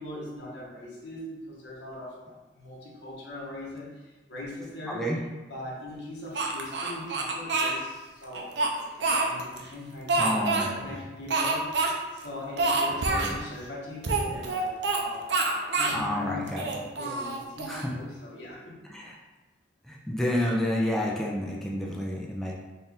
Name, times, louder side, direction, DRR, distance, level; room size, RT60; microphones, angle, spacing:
voice 1, 0.0-5.1 5.4-11.7 12.1-15.5 15.7-16.6 17.0-18.8, left 1 dB, 80° left, -5 dB, 1.2 m, -41 dB
voice 2, 4.9-5.2 10.2-11.0 13.1-13.4 15.9-16.7 17.7-17.9 18.9-19.1 19.9-22.5, left 1 dB, ahead, -3 dB, 0.4 m, -30 dB
Speech, 6.3-7.7 8.3-9.6 10.1-10.7 11.3-11.9 12.2-12.3 12.6-13.3 14.0-15.0 15.3-16.0 16.5-17.8, right 3 dB, 80° right, 0.6 m, -27 dB
4.3 x 2.5 x 3.5 m, 1.2 s
head